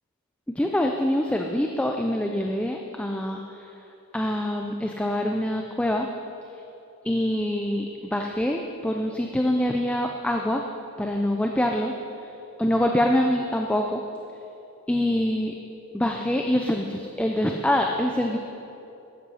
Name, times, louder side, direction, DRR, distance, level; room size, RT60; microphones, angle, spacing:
voice 1, 0.5-3.7 4.1-6.1 7.0-10.6 11.0-12.3 12.6-14.0 14.9-15.5 15.9-18.4, left 1 dB, 5° left, 2 dB, 0.4 m, -25 dB
12.0 x 8.3 x 5.5 m, 2.9 s
head